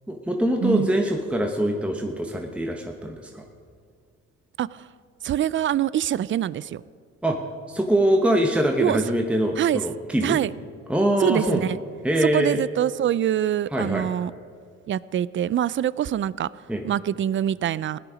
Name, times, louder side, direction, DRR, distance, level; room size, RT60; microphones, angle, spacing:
voice 1, 0.1-3.4 7.2-7.4 7.7-10.4 10.9-11.6 12.0-12.6 13.7-14.1 16.7-16.8, right 1 dB, 5° right, 2 dB, 1.1 m, -23 dB
voice 2, 5.2-6.8 8.8-9.0 9.6-9.8 10.2-10.5 11.2-11.8 12.2-14.3 14.9-16.5 16.8-18.0, right 10 dB, 40° right, 20 dB, 0.4 m, -24 dB
16.5 x 9.9 x 5.0 m, 2.1 s
cardioid pair, 90°, 30 cm